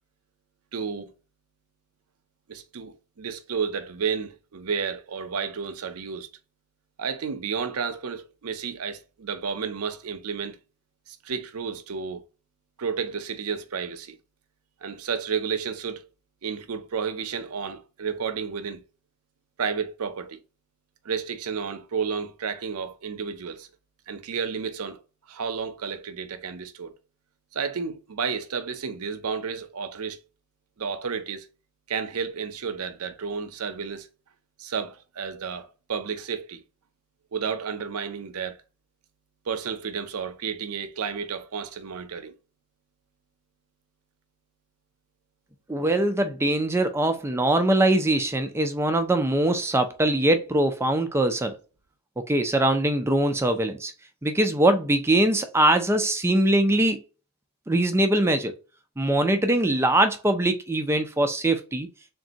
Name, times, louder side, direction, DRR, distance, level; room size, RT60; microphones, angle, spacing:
voice 1, 0.7-1.1 2.5-6.3 7.0-10.6 11.1-12.2 12.8-14.2 14.8-16.1 16.4-18.8 19.6-20.4 21.0-23.7 24.1-25.0 25.3-26.9 27.5-30.2 30.8-31.5 31.9-34.1 34.6-36.6 37.3-38.6 39.5-42.3, right 6 dB, 80° right, 0.6 m, -31 dB
voice 2, 45.7-51.6 52.2-53.9 54.2-57.0 57.7-58.5 59.0-61.9, right 1 dB, 10° right, 0.4 m, -22 dB
3.6 x 2.6 x 3.9 m
head